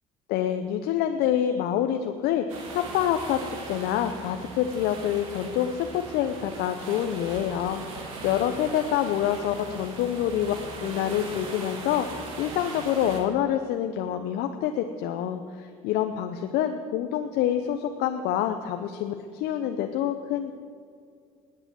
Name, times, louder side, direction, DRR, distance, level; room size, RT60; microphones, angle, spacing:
voice 1, 0.3-20.5, left 10 dB, 70° left, 6 dB, 0.9 m, -27 dB
sound 1, 2.5-13.2, right 3 dB, 85° right, 2.4 m, -39 dB
20.0 x 7.9 x 7.5 m, 2.3 s
hypercardioid pair, 65°, 17 cm